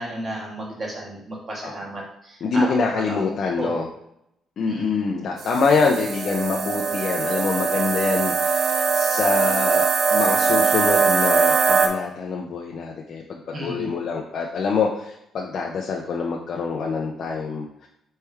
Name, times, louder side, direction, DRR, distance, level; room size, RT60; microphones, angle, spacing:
voice 1, 0.0-3.2 3.6-3.8 4.7-5.1 5.8-5.9 13.5-13.9, right 1 dB, 40° right, -3 dB, 1.7 m, -33 dB
voice 2, 2.4-3.9 4.6-17.9, left 4 dB, 60° left, -1 dB, 0.5 m, -25 dB
sound 1, 5.4-11.9, right 5 dB, 65° right, 0.5 m, -21 dB
4.5 x 3.2 x 3.5 m, 0.77 s
cardioid pair, 90°, 0 cm